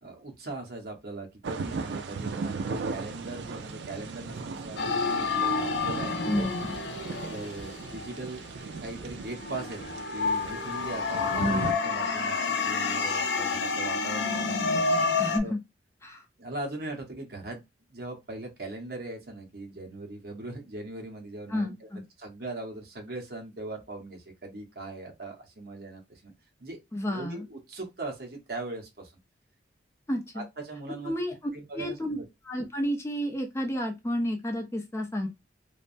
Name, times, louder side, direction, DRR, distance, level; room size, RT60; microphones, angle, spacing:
voice 1, 0.0-6.2 7.1-8.5 8.8-14.8 15.4-15.5 16.4-17.6 17.9-21.7 22.2-26.3 26.6-26.8 27.1-29.1 30.3-31.1 31.5-32.2, right 2 dB, 60° right, 1.0 m, -40 dB
sound 1, 1.4-11.7, right 4 dB, 80° right, 0.4 m, -37 dB
sound 2, 4.8-8.8 9.3-15.4, left 4 dB, 80° left, 0.5 m, -29 dB
voice 2, 6.3-6.8 11.3-11.7 15.2-15.6 16.0-16.2 21.5-22.0 26.9-27.5 30.1-30.4 31.0-32.2 32.4-35.3, equal, 15° left, 0.5 m, -31 dB
3.2 x 2.0 x 2.5 m
head